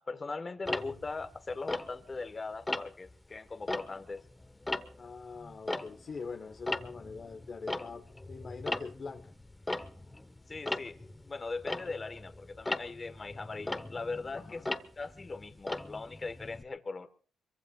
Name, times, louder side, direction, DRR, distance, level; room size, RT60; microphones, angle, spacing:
voice 1, 0.0-4.2 10.5-14.7 15.0-17.1, left 3 dB, 30° left, 1.4 m, -40 dB
Tick-tock, 0.7-2.3 2.7-3.1 3.5-6.3 6.5-16.6, left 2 dB, 15° left, 1.1 m, -38 dB
voice 2, 5.0-9.3 14.3-14.7, left 5 dB, 45° left, 1.2 m, -43 dB
24.5 x 23.5 x 2.4 m
cardioid pair, 80°, 0 cm